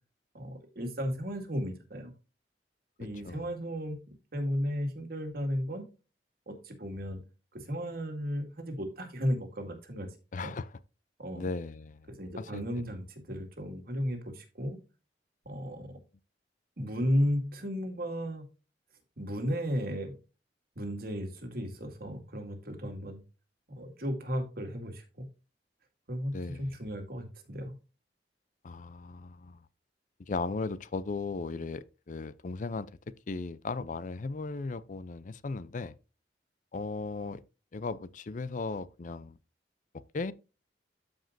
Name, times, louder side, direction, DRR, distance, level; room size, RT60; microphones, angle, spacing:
voice 1, 0.3-2.1 3.0-4.0 4.3-5.8 6.5-7.2 7.5-10.1 10.4-10.5 11.2-11.5 12.2-14.8 15.5-16.0 16.8-18.5 19.2-20.2 20.8-23.2 23.7-25.3 26.1-27.8, equal, 60° right, 2.1 m, -34 dB
voice 2, 10.3-10.7 11.3-12.0 12.4-12.6 15.8-16.0 26.3-26.8 28.6-29.6 30.3-32.9 33.3-36.0 36.7-37.4 37.7-39.4 40.1-40.3, left 3 dB, 45° left, 0.5 m, -36 dB
13.5 x 5.1 x 2.6 m
head